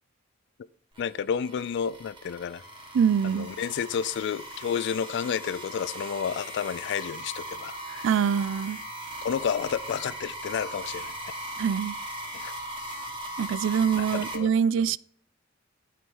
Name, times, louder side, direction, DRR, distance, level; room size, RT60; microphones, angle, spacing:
sound 1, 0.9-14.4, right 1 dB, 25° right, 1.7 m, -39 dB
voice 1, 1.0-2.6 3.2-8.1 9.2-11.1 12.3-12.5 13.9-14.5 14.8-15.0, left 7 dB, 60° left, 0.3 m, -31 dB
voice 2, 2.9-3.5 8.0-8.8 11.6-12.0 13.4-15.0, right 7 dB, 65° right, 0.3 m, -24 dB
12.0 x 4.7 x 5.5 m
head